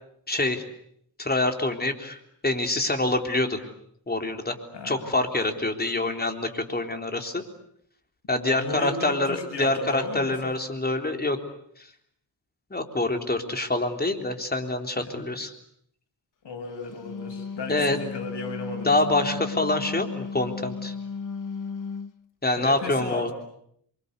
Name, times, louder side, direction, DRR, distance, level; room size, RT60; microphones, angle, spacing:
voice 1, 0.3-0.6 1.2-3.6 4.1-4.6 4.8-7.4 8.3-11.4 11.8-11.9 12.7-15.5 17.7-18.0 18.8-20.9 22.4-23.3, left 2 dB, 20° left, 5 dB, 3.7 m, -26 dB
voice 2, 8.3-10.5 14.9-15.2 16.4-18.9 22.6-23.3, left 3 dB, 70° left, 5 dB, 7.6 m, -35 dB
Wind instrument woodwind instrument, 16.8-22.2, left 5 dB, 45° left, 1.4 m, -35 dB
28.0 x 23.5 x 8.3 m, 0.69 s
cardioid pair, 100°, 43 cm